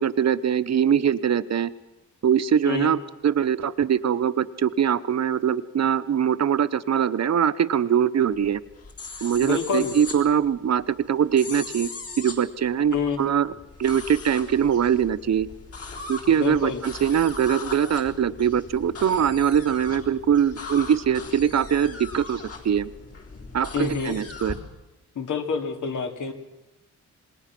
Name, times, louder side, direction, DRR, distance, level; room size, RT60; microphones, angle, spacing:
voice 1, 0.0-1.7 2.2-3.0 3.2-8.6 9.2-11.9 12.2-13.5 13.8-15.5 16.1-22.9 23.5-24.5, right 8 dB, 60° right, 14 dB, 1.0 m, -22 dB
sound 1, 8.3-24.6, left 4 dB, 50° left, 3.8 m, -39 dB
voice 2, 9.4-9.9 12.9-13.2 16.4-16.8 23.7-24.2 25.1-26.3, left 6 dB, 85° left, 5 dB, 2.8 m, -27 dB
27.0 x 20.5 x 6.1 m, 0.97 s
wide cardioid pair, 140°, 30 cm